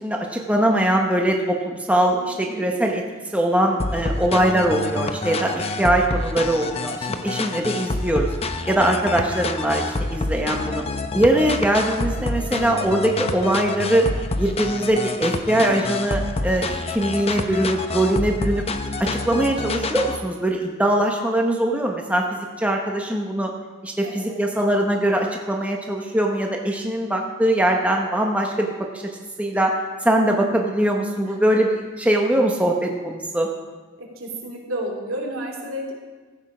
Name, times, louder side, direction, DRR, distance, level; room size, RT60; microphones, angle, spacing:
voice 1, 0.0-3.0 3.3-8.3 8.7-10.8 11.1-14.1 14.4-18.6 19.0-23.5 23.8-29.0 29.4-29.7 30.0-33.5, right 1 dB, 5° right, 1 dB, 0.9 m, -22 dB
voice 2, 2.2-2.6 5.4-5.7 8.7-8.8 15.6-15.9 16.6-16.7 24.0-24.4 30.2-30.6 31.2-31.3 34.0-35.9, right 1 dB, 75° right, -1 dB, 2.8 m, -33 dB
sound 1, 3.8-20.2, left 3 dB, 30° left, 0.7 m, -27 dB
14.5 x 8.0 x 5.0 m, 1.3 s
head